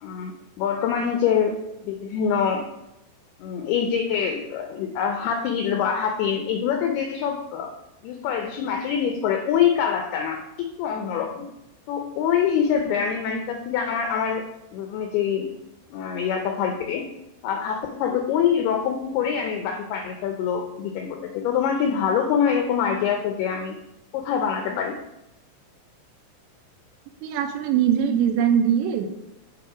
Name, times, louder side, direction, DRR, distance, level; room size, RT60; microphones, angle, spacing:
voice 1, 0.0-1.6 1.8-2.7 3.4-7.7 8.0-11.5 11.9-14.4 14.7-15.5 15.9-17.1 17.4-23.8 24.1-25.0, left 7 dB, 85° left, 3 dB, 2.2 m, -25 dB
voice 2, 27.2-29.1, right 8 dB, 80° right, 6 dB, 2.9 m, -21 dB
10.5 x 3.6 x 4.9 m, 0.90 s
omnidirectional pair, 5.2 m